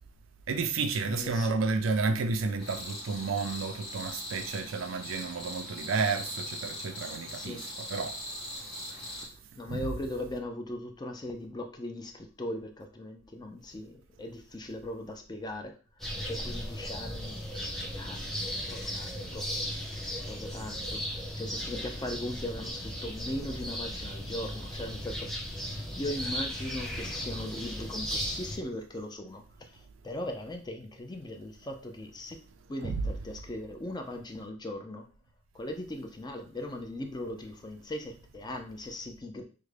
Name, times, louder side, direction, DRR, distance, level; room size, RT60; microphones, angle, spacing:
voice 1, 0.5-8.2 9.7-9.9 32.8-33.0, right 4 dB, 75° right, 0.4 m, -31 dB
voice 2, 1.0-1.5 7.3-7.7 8.9-15.8 16.2-17.4 18.0-19.5 20.3-21.0 21.3-25.3 25.7-32.4 32.7-35.1 35.5-39.4, left 1 dB, 20° left, 0.4 m, -39 dB
sound 1, 2.6-9.3, left 1 dB, 50° left, 1.7 m, -41 dB
sound 2, 16.0-28.6, equal, ahead, 0.8 m, -36 dB
3.6 x 2.1 x 3.2 m
head